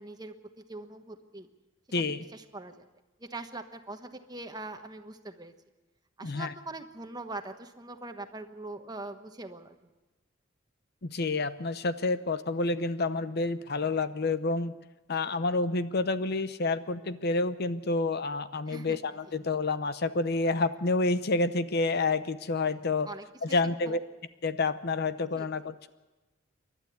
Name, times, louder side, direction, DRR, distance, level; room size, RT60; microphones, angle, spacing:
voice 1, 0.0-1.5 2.3-2.9 3.2-5.5 6.2-9.7 18.7-19.0 19.3-19.4 23.1-23.6 23.9-24.0 25.4-25.5, right 2 dB, 20° right, 7 dB, 1.2 m, -42 dB
voice 2, 1.9-2.2 6.2-6.5 11.0-14.7 15.1-23.1 23.4-24.0 24.4-25.9, left 3 dB, 55° left, 13 dB, 0.8 m, -29 dB
28.0 x 12.0 x 8.0 m, 1.1 s
head